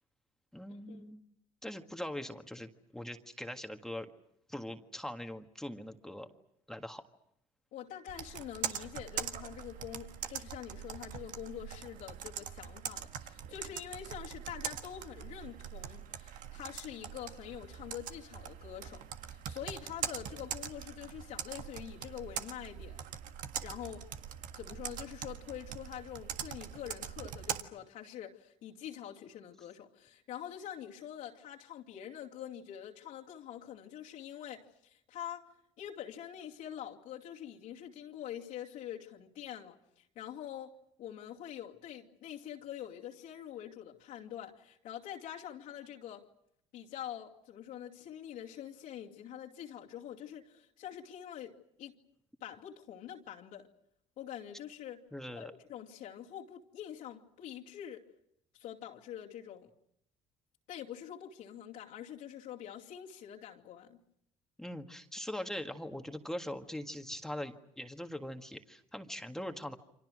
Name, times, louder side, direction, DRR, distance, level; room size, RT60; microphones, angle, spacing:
voice 1, 0.5-1.2 1.6-4.1 4.5-6.3 6.7-7.0 55.1-55.5 64.6-69.8, left 1 dB, 5° left, 1.7 m, -41 dB
voice 2, 7.7-23.0 23.6-24.1 24.5-35.4 35.8-40.7 41.0-46.3 46.7-51.9 52.4-53.7 54.2-55.0 55.4-58.0 58.5-59.7 60.7-64.0, left 10 dB, 75° left, 2.7 m, -45 dB
Computer keyboard, 8.1-27.6, right 9 dB, 70° right, 1.7 m, -42 dB
29.5 x 25.0 x 6.3 m
supercardioid pair, 90°, 14 cm